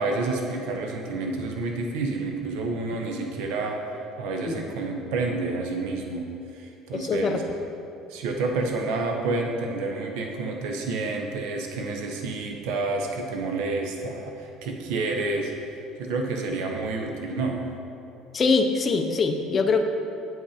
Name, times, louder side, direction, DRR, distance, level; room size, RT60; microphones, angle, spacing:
voice 1, 0.0-7.4 8.1-15.5 16.0-17.7, right 3 dB, 80° right, 2 dB, 0.8 m, -29 dB
voice 2, 6.9-7.4 18.3-19.8, left 4 dB, 25° left, 5 dB, 0.5 m, -23 dB
9.0 x 5.8 x 4.3 m, 2.8 s
cardioid pair, 165°, 0 cm